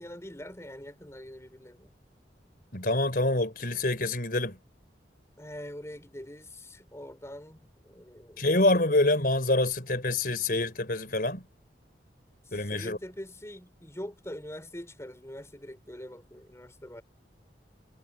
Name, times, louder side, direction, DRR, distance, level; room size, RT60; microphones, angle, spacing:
voice 1, 0.0-1.9 5.4-8.5 12.4-17.0, left 1 dB, 15° left, 4.9 m, -43 dB
voice 2, 2.7-4.6 8.4-11.5 12.5-13.0, left 2 dB, 55° left, 4.3 m, -26 dB
head